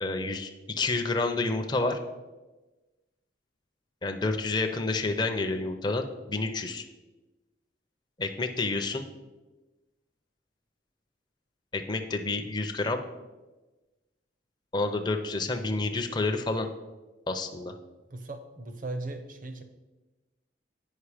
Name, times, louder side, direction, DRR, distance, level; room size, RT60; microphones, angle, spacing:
voice 1, 0.0-2.0 4.0-6.8 8.2-9.0 11.7-13.0 14.7-16.7 17.3-17.7, left 3 dB, 25° left, 5 dB, 0.5 m, -29 dB
voice 2, 18.1-19.6, right 2 dB, 45° right, 7 dB, 0.8 m, -37 dB
8.4 x 5.5 x 4.9 m, 1.1 s
head